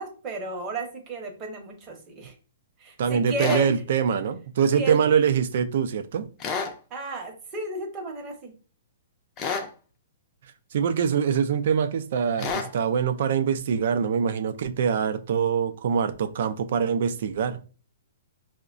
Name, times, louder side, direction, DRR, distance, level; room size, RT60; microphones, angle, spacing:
voice 1, 0.0-2.3 2.8-3.8 4.7-5.0 6.9-8.5, right 2 dB, 25° right, 0.8 m, -33 dB
voice 2, 3.0-6.3 10.7-17.6, right 7 dB, 60° right, 0.4 m, -24 dB
sound 1, 3.4-3.7 6.4-6.8 9.4-9.7 12.4-12.7, left 5 dB, 25° left, 0.5 m, -29 dB
4.6 x 2.1 x 2.5 m
hypercardioid pair, 155°, 0 cm